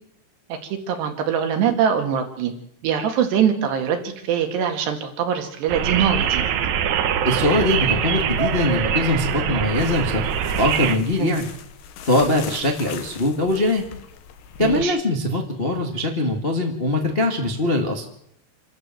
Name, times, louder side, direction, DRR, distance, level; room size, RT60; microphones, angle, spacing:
voice 1, 0.5-2.5 2.8-6.4 11.2-11.4 14.6-15.0, right 8 dB, 90° right, 5 dB, 4.3 m, -23 dB
sound 1, 5.7-11.0, right 8 dB, 65° right, 1.9 m, -23 dB
voice 2, 7.2-10.2 10.6-11.5 12.0-13.8 14.6-18.0, left 1 dB, 35° left, 2 dB, 0.8 m, -22 dB
sound 2, 9.8-14.8, left 8 dB, 85° left, 3.4 m, -40 dB
27.5 x 13.0 x 7.7 m, 0.75 s
omnidirectional pair, 4.7 m